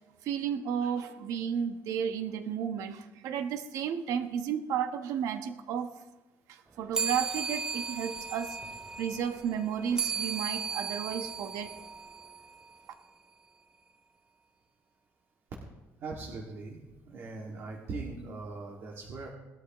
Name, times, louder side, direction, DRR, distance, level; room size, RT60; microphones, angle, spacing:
voice 1, 0.2-5.9 6.8-8.6 9.0-11.7, right 8 dB, 80° right, 7 dB, 1.1 m, -33 dB
sound 1, 6.9-12.8, right 5 dB, 10° right, 0.6 m, -36 dB
voice 2, 16.0-19.3, right 3 dB, 50° right, -2 dB, 2.2 m, -40 dB
19.5 x 13.0 x 3.1 m, 1.1 s
cardioid pair, 170°, 6 cm